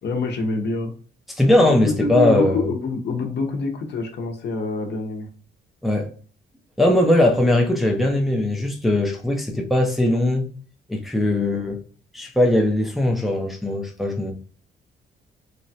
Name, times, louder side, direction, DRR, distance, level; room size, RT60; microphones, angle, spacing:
voice 1, 0.0-0.9 1.6-5.3 11.4-11.6, left 3 dB, 60° left, 0.8 m, -26 dB
voice 2, 1.4-2.7 5.8-6.1 6.8-10.5 10.9-11.8 12.1-14.3, left 1 dB, ahead, 0.5 m, -20 dB
3.0 x 2.2 x 2.7 m
cardioid pair, 90°, 20 cm